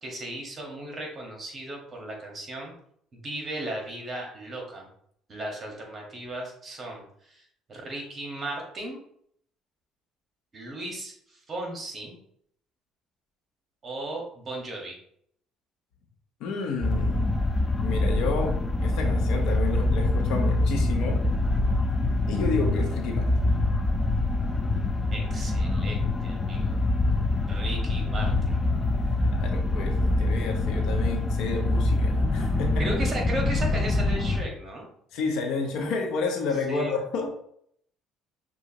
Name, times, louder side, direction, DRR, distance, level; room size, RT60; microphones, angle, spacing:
voice 1, 0.0-2.7 3.1-4.9 5.3-7.4 7.7-9.0 10.5-12.1 13.8-15.0 25.1-26.8 27.5-28.6 32.8-34.9 36.7-36.9, right 1 dB, 30° right, 0 dB, 1.5 m, -36 dB
voice 2, 16.4-17.2 17.8-18.6 18.8-21.3 22.3-23.3 29.4-32.9 35.1-37.3, left 4 dB, 75° left, 2 dB, 1.0 m, -30 dB
sound 1, 16.8-34.4, left 2 dB, 15° left, 0.5 m, -25 dB
6.2 x 2.6 x 2.9 m, 0.67 s
cardioid pair, 115°, 0 cm